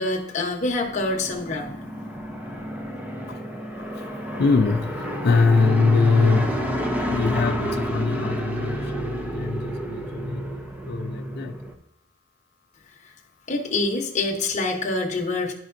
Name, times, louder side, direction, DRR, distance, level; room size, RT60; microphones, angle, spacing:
voice 1, 0.0-1.8 13.5-15.5, left 2 dB, 35° left, 0.9 m, -26 dB
sound 1, 0.8-11.7, equal, 10° right, 0.6 m, -30 dB
voice 2, 3.8-6.7 7.1-10.5 10.9-11.5, left 4 dB, 50° left, 0.4 m, -23 dB
10.5 x 5.3 x 2.6 m
head